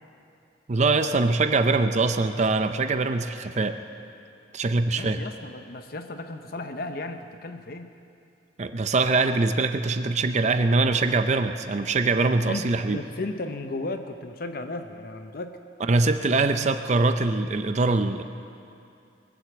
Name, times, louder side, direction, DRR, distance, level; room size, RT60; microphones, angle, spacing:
voice 1, 0.7-3.8 4.5-5.2 8.6-13.0 15.9-18.2, right 3 dB, 40° right, 9 dB, 0.5 m, -23 dB
voice 2, 4.9-7.9 12.2-15.6, left 2 dB, 55° left, 7 dB, 0.7 m, -35 dB
22.0 x 7.9 x 8.0 m, 2.6 s
head